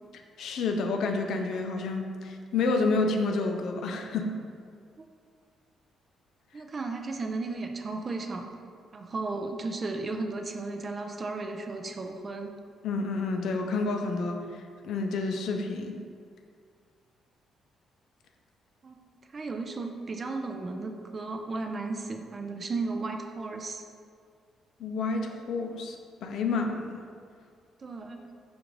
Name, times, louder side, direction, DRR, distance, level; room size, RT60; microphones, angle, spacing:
voice 1, 0.4-4.4 12.8-16.0 24.8-26.0 26.2-27.0, left 3 dB, 75° left, 3 dB, 0.4 m, -29 dB
voice 2, 6.5-8.4 8.9-12.5 18.8-19.0 19.3-23.8 27.8-28.2, right 3 dB, 35° right, 4 dB, 0.4 m, -34 dB
5.0 x 2.5 x 3.0 m, 2.2 s
cardioid pair, 90°, 0 cm